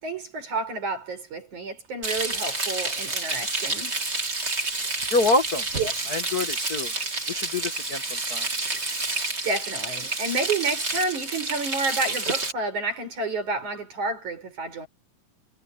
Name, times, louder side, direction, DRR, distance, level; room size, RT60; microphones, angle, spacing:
voice 1, 0.0-4.0 5.8-5.9 9.4-14.9, right 3 dB, 75° right, 8.2 m, -30 dB
Frying (food), 2.0-12.5, right 3 dB, 20° right, 2.9 m, -29 dB
voice 2, 5.1-5.6 6.1-6.9 7.3-8.0 8.3-8.5, left 2 dB, 40° left, 1.5 m, -25 dB
omnidirectional pair, 3.4 m